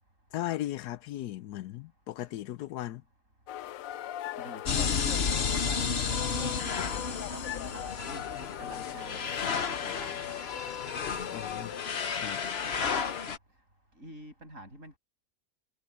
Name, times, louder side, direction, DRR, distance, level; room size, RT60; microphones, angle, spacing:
voice 1, 0.3-3.0 11.3-11.7 12.2-12.4, left 14 dB, 85° left, 1.2 m, -37 dB
sound 1, 3.5-13.3, left 12 dB, 65° left, 0.9 m, -40 dB
voice 2, 4.4-5.1 5.5-10.4 14.0-15.0, right 1 dB, 50° right, 8.3 m, -47 dB
sound 2, 4.6-13.4, left 6 dB, 45° left, 1.2 m, -32 dB
omnidirectional pair, 1.7 m